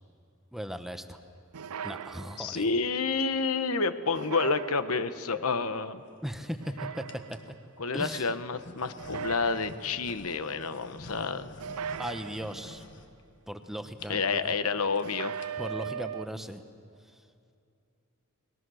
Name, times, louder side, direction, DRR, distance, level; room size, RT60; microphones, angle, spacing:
voice 1, 0.5-1.2 1.8-2.7 6.2-7.4 7.9-8.3 12.0-12.8 13.5-14.5 15.6-16.6, equal, ahead, 8 dB, 0.9 m, -37 dB
sound 1, 1.5-2.8 4.1-5.3 6.6-7.6 9.0-10.1 11.6-12.9 15.0-16.3, right 7 dB, 85° right, 0.5 m, -39 dB
voice 2, 2.4-6.0 7.8-11.5 14.1-15.3, left 4 dB, 80° left, 11 dB, 1.1 m, -29 dB
sound 2, 5.2-5.4 6.1-6.6 7.1-7.5 8.2-13.7 14.0-14.1 14.4-14.5 14.7-15.0 15.3-15.8, left 2 dB, 55° left, 1.5 m, -49 dB
30.0 x 21.0 x 6.4 m, 2.5 s
head